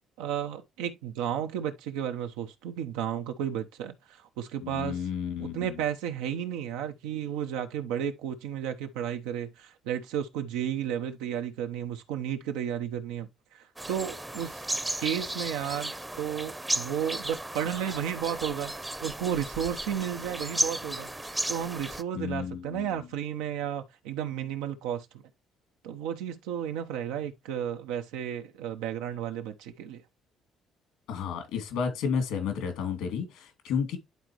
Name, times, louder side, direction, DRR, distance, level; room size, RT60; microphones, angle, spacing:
voice 1, 0.2-5.1 5.4-18.7 19.0-21.1 21.5-25.1 25.8-30.0, right 9 dB, 90° right, 1.0 m, -33 dB
voice 2, 4.6-5.7 22.1-22.9 31.1-34.0, left 6 dB, 80° left, 2.6 m, -32 dB
sound 1, 13.8-22.0, right 1 dB, 10° right, 0.8 m, -34 dB
11.0 x 4.1 x 3.0 m
supercardioid pair, 70°, 0 cm